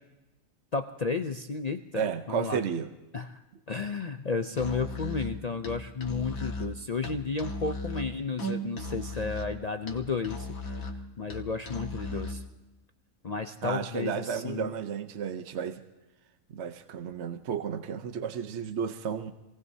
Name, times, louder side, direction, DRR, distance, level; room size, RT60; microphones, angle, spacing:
voice 1, 0.7-2.6 3.1-3.4 3.7-10.5 11.2-12.4 13.2-14.7, left 4 dB, 50° left, 7 dB, 0.4 m, -32 dB
voice 2, 1.9-2.9 13.6-15.8 16.5-19.3, right 7 dB, 60° right, 8 dB, 1.0 m, -32 dB
Musical instrument, 4.5-12.5, left 1 dB, 90° left, 1.9 m, -37 dB
26.5 x 18.0 x 2.7 m, 1.1 s
omnidirectional pair, 1.4 m